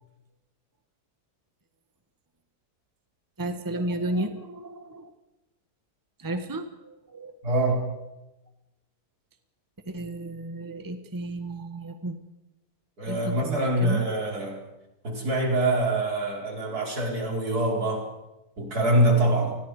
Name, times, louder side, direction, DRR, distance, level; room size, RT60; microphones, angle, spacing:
voice 1, 3.4-5.1 6.2-7.4 9.9-12.2 13.1-14.1, right 1 dB, 15° right, 7 dB, 1.4 m, -33 dB
voice 2, 7.4-7.9 13.0-14.6 15.0-18.1 18.6-19.6, right 1 dB, 70° right, 0 dB, 5.1 m, -24 dB
29.0 x 20.5 x 4.9 m, 0.96 s
omnidirectional pair, 1.7 m